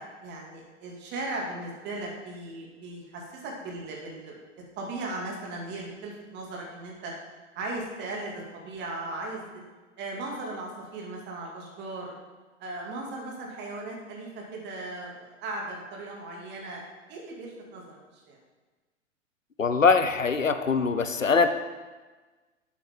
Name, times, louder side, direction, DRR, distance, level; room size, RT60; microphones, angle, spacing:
voice 1, 0.0-4.4 4.8-7.1 7.6-9.5 10.0-12.1 12.6-16.8 17.1-18.0 18.3-18.4, right 2 dB, 30° right, -1 dB, 2.5 m, -37 dB
voice 2, 19.6-21.5, left 5 dB, 90° left, 10 dB, 0.8 m, -22 dB
11.5 x 8.3 x 3.8 m, 1.3 s
figure-of-eight pair, 105°, 38 cm